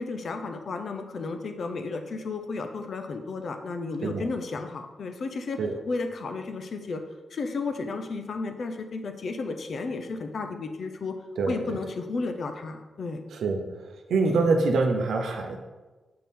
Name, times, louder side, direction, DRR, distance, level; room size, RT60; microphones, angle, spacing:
voice 1, 0.0-5.6 5.9-7.0 7.3-11.2 11.5-13.2, left 3 dB, 50° left, 6 dB, 0.5 m, -33 dB
voice 2, 13.3-13.7 14.1-15.6, right 3 dB, 90° right, 3 dB, 0.7 m, -25 dB
7.5 x 3.5 x 4.2 m, 1.2 s
wide cardioid pair, 170°, 0 cm